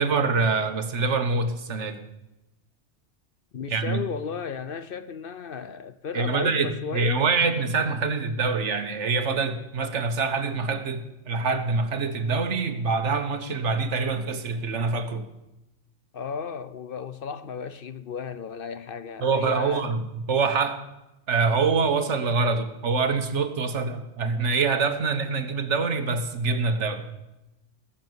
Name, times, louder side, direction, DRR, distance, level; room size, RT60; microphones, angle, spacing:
voice 1, 0.0-2.0 3.7-4.0 6.1-15.3 19.2-20.8 21.3-27.1, right 4 dB, 75° right, 1.6 m, -25 dB
voice 2, 3.5-7.3 16.1-19.9, left 6 dB, 55° left, 0.8 m, -34 dB
18.5 x 7.1 x 9.6 m
omnidirectional pair, 1.2 m